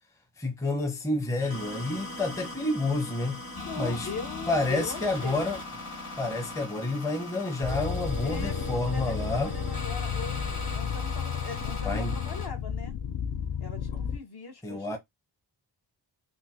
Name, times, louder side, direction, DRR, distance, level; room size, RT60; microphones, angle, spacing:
voice 1, 0.4-3.4 3.7-4.1 4.5-5.6 6.2-9.5 11.8-12.1 14.6-15.0, left 2 dB, 5° left, 0.5 m, -29 dB
sound 1, 1.4-12.5, left 1 dB, 35° left, 1.5 m, -39 dB
voice 2, 3.6-5.5 8.2-12.9 13.6-15.0, left 4 dB, 55° left, 0.9 m, -41 dB
sound 2, 7.6-14.2, left 8 dB, 75° left, 0.5 m, -32 dB
3.7 x 2.3 x 2.7 m
wide cardioid pair, 130°, 47 cm